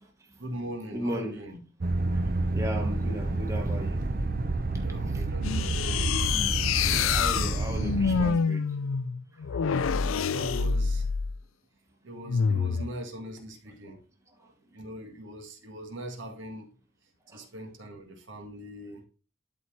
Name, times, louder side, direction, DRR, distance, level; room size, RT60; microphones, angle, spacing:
voice 1, 0.4-1.6 4.8-5.7 10.2-11.1 12.0-14.0 14.7-16.7 17.3-19.0, right 1 dB, 70° right, 1.7 m, -41 dB
voice 2, 0.9-1.4 1.8-4.0 4.7-5.6 6.8-8.6 9.3-9.6 13.9-14.0 14.3-14.5 17.3-17.5, equal, 15° right, 1.3 m, -38 dB
sound 1, 1.8-8.3, right 2 dB, 45° right, 0.7 m, -29 dB
sound 2, 5.4-11.4 12.3-12.9, left 6 dB, 85° left, 0.4 m, -27 dB
12.5 x 4.2 x 3.2 m
head